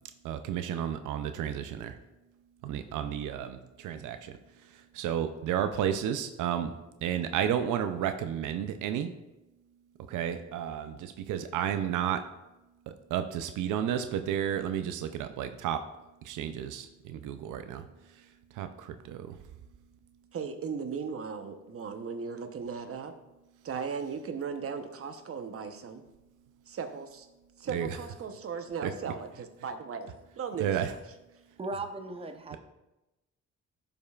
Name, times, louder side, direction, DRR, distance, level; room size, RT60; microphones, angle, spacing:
voice 1, 0.2-2.0 2.6-4.4 4.9-6.7 7.0-9.1 10.1-12.2 12.9-15.8 16.2-17.8 18.5-19.4 27.7-28.0 28.8-28.9 30.6-30.9, right 9 dB, 85° right, 0.5 m, -32 dB
voice 2, 20.3-23.1 23.6-26.0 26.7-27.3 27.6-30.1 30.4-30.8, right 6 dB, 50° right, 0.9 m, -37 dB
voice 3, 31.6-32.6, right 2 dB, 20° right, 0.7 m, -37 dB
11.5 x 5.3 x 2.4 m
cardioid pair, 90°, 30 cm